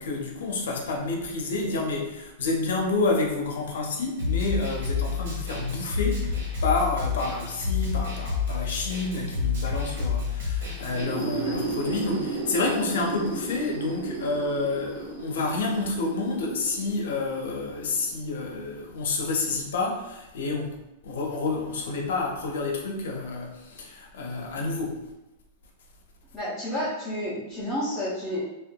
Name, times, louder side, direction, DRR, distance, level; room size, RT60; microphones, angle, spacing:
voice 1, 0.0-20.8 21.0-25.0, left 3 dB, 75° left, 0 dB, 0.6 m, -29 dB
Snare drum, 4.2-11.0, left 6 dB, 70° right, 1.2 m, -29 dB
sound 1, 10.8-18.4, right 2 dB, 30° right, 1.0 m, -34 dB
voice 2, 26.3-28.4, left 1 dB, 10° left, -11 dB, 0.5 m, -30 dB
2.7 x 2.3 x 2.2 m, 0.93 s
supercardioid pair, 170°, 0 cm